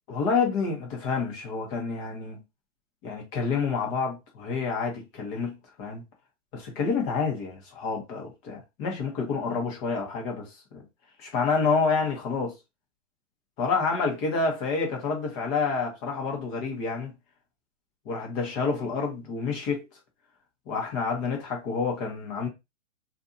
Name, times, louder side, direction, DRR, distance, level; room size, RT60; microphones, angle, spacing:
voice 1, 0.1-2.4 3.0-6.0 6.5-10.8 11.2-12.5 13.6-17.1 18.1-19.8 20.7-22.5, left 4 dB, 25° left, 0.9 m, -28 dB
2.6 x 2.5 x 2.7 m
hypercardioid pair, 140°, 36 cm